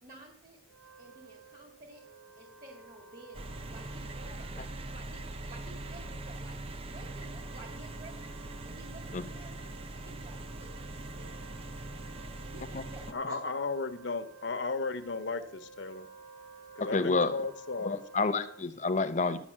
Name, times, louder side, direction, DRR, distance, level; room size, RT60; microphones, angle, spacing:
voice 1, 0.0-0.6 1.0-2.0 2.4-6.6 6.9-8.2 8.6-9.6 9.9-10.7 11.1-11.8 12.1-13.4, right 2 dB, 50° right, 1 dB, 1.9 m, -52 dB
Wind instrument woodwind instrument, 0.7-18.7, right 4 dB, 85° right, 3.0 m, -53 dB
sound 1, 3.3-13.1, right 2 dB, 30° right, 0.5 m, -42 dB
voice 2, 13.1-16.1 16.8-18.0, left 4 dB, 75° left, 10 dB, 0.8 m, -35 dB
voice 3, 16.8-17.4 17.8-19.4, left 3 dB, 40° left, 11 dB, 0.6 m, -29 dB
11.0 x 5.2 x 7.4 m, 0.67 s
head